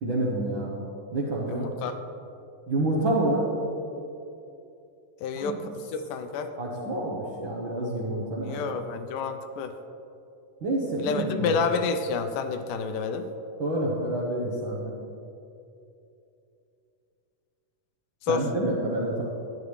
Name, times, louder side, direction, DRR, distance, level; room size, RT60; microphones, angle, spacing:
voice 1, 0.0-0.8 1.1-1.7 2.7-3.4 5.4-5.5 6.6-8.7 10.6-11.5 13.6-14.9 18.3-19.2, right 1 dB, 65° right, -5 dB, 1.2 m, -28 dB
voice 2, 1.5-2.0 5.2-6.5 8.4-9.7 11.0-13.3 18.2-18.4, left 5 dB, 85° left, 8 dB, 2.2 m, -29 dB
12.0 x 9.9 x 3.2 m, 2.7 s
omnidirectional pair, 3.7 m